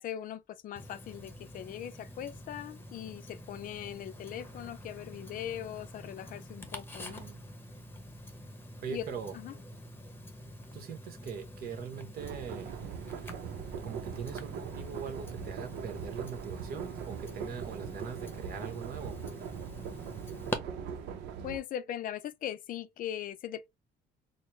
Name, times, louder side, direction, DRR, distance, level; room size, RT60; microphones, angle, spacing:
voice 1, 0.0-7.2 8.9-9.1 9.3-9.5 20.3-21.0 21.4-23.7, left 10 dB, 55° left, 0.4 m, -40 dB
Tick-tock, 0.8-20.6, left 1 dB, 15° left, 0.8 m, -46 dB
voice 2, 7.0-7.4 8.8-9.4 10.7-12.7 13.8-19.2, right 6 dB, 65° right, 1.1 m, -41 dB
sound 1, 12.2-21.6, right 7 dB, 85° right, 0.7 m, -41 dB
4.3 x 2.1 x 3.1 m
cardioid pair, 110°, 17 cm